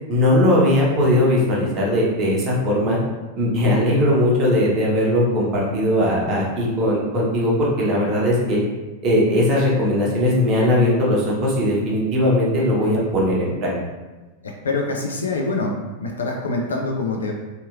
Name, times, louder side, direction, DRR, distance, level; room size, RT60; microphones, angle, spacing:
voice 1, 0.1-3.0 3.4-8.6 9.0-13.7, left 1 dB, 30° right, -4 dB, 0.8 m, -19 dB
voice 2, 14.4-15.7 16.0-17.3, left 3 dB, 70° left, 1 dB, 0.3 m, -25 dB
2.7 x 2.5 x 2.5 m, 1.2 s
figure-of-eight pair, 90°, 0 cm